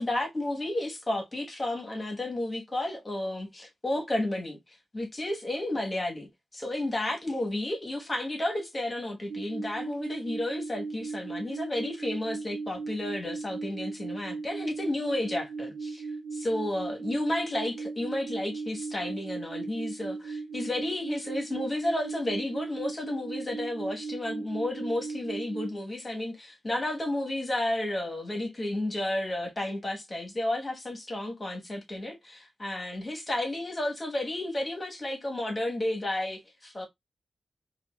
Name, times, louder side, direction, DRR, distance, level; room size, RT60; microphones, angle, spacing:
voice 1, 0.0-4.6 4.9-36.9, left 1 dB, 25° left, 1.2 m, -32 dB
sound 1, 9.3-25.8, right 4 dB, 75° right, 0.3 m, -37 dB
5.1 x 2.4 x 2.3 m
wide cardioid pair, 125°, 0 cm